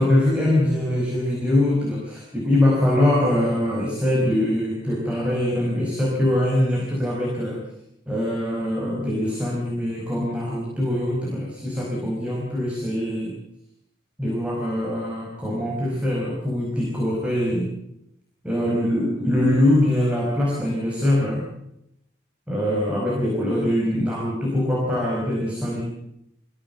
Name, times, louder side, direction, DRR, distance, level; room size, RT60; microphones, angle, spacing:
voice 1, 0.0-7.6 8.1-13.3 14.2-17.7 18.4-21.4 22.5-25.8, left 1 dB, 5° right, -3 dB, 4.9 m, -23 dB
24.5 x 16.0 x 8.0 m, 0.79 s
head